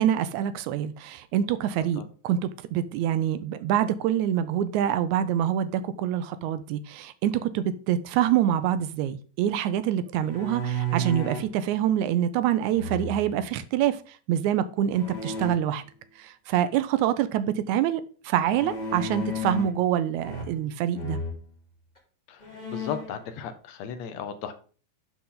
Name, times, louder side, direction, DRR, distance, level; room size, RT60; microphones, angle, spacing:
voice 1, 0.0-15.8 16.2-21.2, right 10 dB, 80° right, 1.9 m, -26 dB
sound 1, 10.2-11.5 12.7-13.4 14.9-15.5 18.4-19.8 20.2-20.7 20.9-21.4 22.0-22.1 22.4-23.2, right 1 dB, 15° left, 2.2 m, -33 dB
voice 2, 22.7-24.5, left 7 dB, 70° left, 1.8 m, -35 dB
11.0 x 4.5 x 3.8 m
omnidirectional pair, 3.5 m